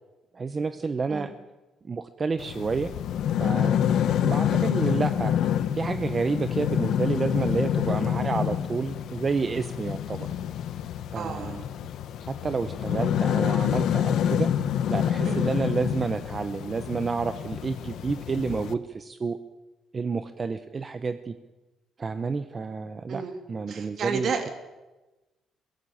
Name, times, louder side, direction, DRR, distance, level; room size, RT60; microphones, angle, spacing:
voice 1, 0.3-1.3 1.9-2.9 3.4-5.3 5.8-10.3 11.1-11.6 12.3-14.5 14.9-19.4 19.9-21.3 22.0-23.2 23.5-24.3, right 4 dB, 25° right, 10 dB, 0.8 m, -30 dB
sound 1, 2.4-18.7, left 9 dB, 70° left, 1.0 m, -27 dB
voice 2, 11.1-11.6 15.2-15.6 23.1-23.4 23.7-24.5, right 5 dB, 50° right, 6 dB, 3.0 m, -32 dB
22.5 x 16.0 x 8.7 m, 1.1 s
cardioid pair, 150°, 0 cm